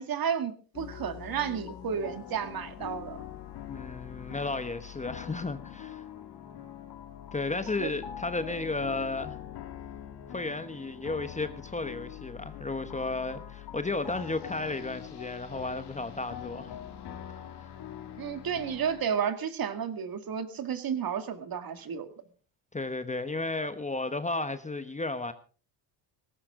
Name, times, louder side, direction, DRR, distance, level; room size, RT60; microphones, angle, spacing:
voice 1, 0.0-3.2 7.8-7.9 18.2-22.1, right 7 dB, 45° right, 2.2 m, -32 dB
sound 1, 0.7-19.0, left 10 dB, 55° left, 2.3 m, -43 dB
voice 2, 3.7-6.0 7.3-9.4 10.3-16.7 17.6-17.7 22.7-25.3, left 3 dB, 15° left, 1.0 m, -33 dB
18.5 x 15.5 x 3.7 m
cardioid pair, 110°, 49 cm